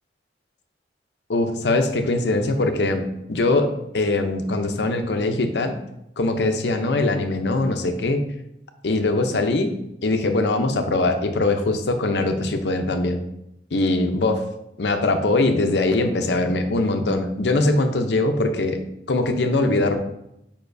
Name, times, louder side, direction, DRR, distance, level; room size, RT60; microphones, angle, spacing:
voice 1, 1.3-5.7 6.2-8.2 8.8-9.7 10.0-13.2 13.7-14.4 14.8-18.8 19.1-20.0, left 2 dB, 70° left, 6 dB, 0.7 m, -22 dB
6.8 x 5.5 x 2.7 m, 0.82 s
head